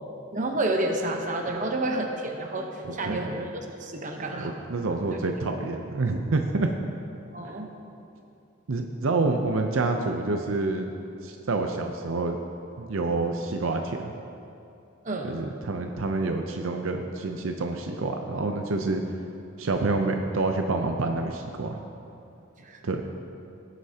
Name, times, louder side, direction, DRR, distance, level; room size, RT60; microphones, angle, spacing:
voice 1, 0.3-4.5 5.1-5.2 7.3-7.7 15.0-15.4 22.6-22.8, right 2 dB, 40° right, 2 dB, 0.9 m, -30 dB
voice 2, 2.8-3.2 4.4-6.7 7.5-7.6 8.7-10.9 11.2-12.4 12.8-14.1 15.2-19.0 19.6-21.8 22.8-23.0, right 3 dB, 75° right, 4 dB, 0.6 m, -28 dB
17.0 x 8.2 x 2.8 m, 2.7 s
head